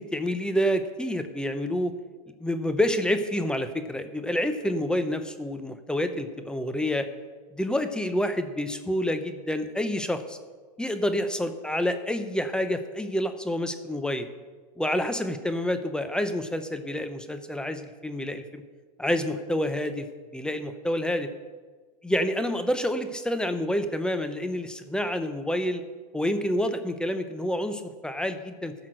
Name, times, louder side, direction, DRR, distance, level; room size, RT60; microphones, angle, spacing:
voice 1, 0.0-1.9 2.4-7.1 7.5-10.4 10.8-14.3 14.8-18.6 19.0-20.1 20.3-21.3 22.0-25.8 26.1-28.7, left 1 dB, 5° left, 8 dB, 0.8 m, -28 dB
15.0 x 5.9 x 6.4 m, 1.4 s
hypercardioid pair, 115°, 21 cm